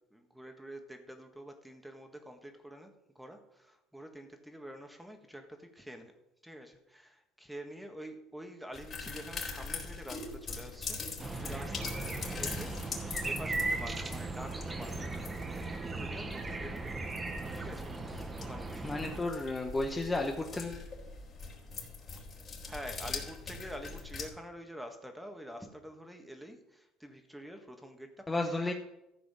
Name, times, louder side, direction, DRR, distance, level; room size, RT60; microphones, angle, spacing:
voice 1, 0.0-6.1 6.4-12.7 13.2-17.1 17.5-18.9 22.6-28.4, equal, 5° right, 5 dB, 1.6 m, -47 dB
sound 1, 8.7-24.3, left 4 dB, 35° left, 3.8 m, -43 dB
sound 2, 11.2-19.2, right 3 dB, 20° right, 1.2 m, -37 dB
voice 2, 18.8-20.8 28.3-28.7, left 2 dB, 15° left, 2 dB, 1.1 m, -33 dB
14.5 x 5.0 x 7.5 m, 0.89 s
supercardioid pair, 110°, 0 cm